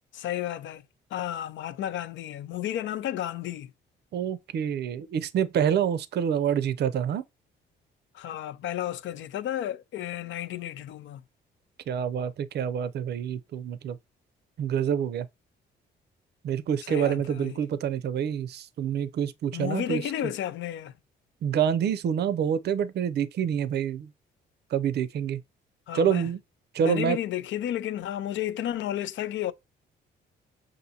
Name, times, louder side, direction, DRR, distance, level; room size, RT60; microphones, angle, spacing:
voice 1, 0.2-0.8 1.1-3.7 8.1-11.2 16.8-17.6 19.5-20.9 25.9-26.3 26.8-29.5, left 11 dB, 70° left, 0.5 m, -32 dB
voice 2, 4.1-7.2 11.9-14.0 14.6-15.3 16.4-20.1 21.4-24.1 24.7-25.4 25.9-26.4 26.7-27.2, right 8 dB, 55° right, 0.5 m, -27 dB
5.5 x 2.6 x 2.7 m
cardioid pair, 90°, 20 cm